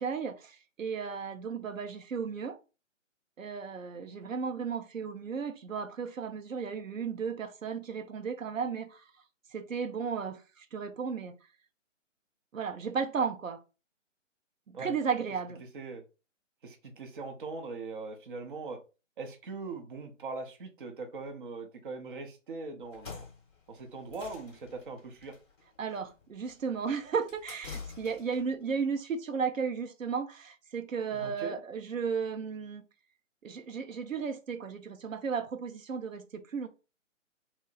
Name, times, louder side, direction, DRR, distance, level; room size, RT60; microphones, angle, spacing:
voice 1, 0.0-2.6 3.4-9.0 9.5-11.4 12.5-13.6 14.7-15.6 25.8-32.8 33.4-36.7, right 6 dB, 80° right, 0.6 m, -34 dB
voice 2, 16.6-18.8 19.2-23.3 23.7-25.3 31.1-31.6, right 3 dB, 40° right, 0.6 m, -41 dB
sound 1, 22.8-28.5, left 5 dB, 20° left, 0.7 m, -48 dB
2.8 x 2.0 x 3.8 m
figure-of-eight pair, 145°, 39 cm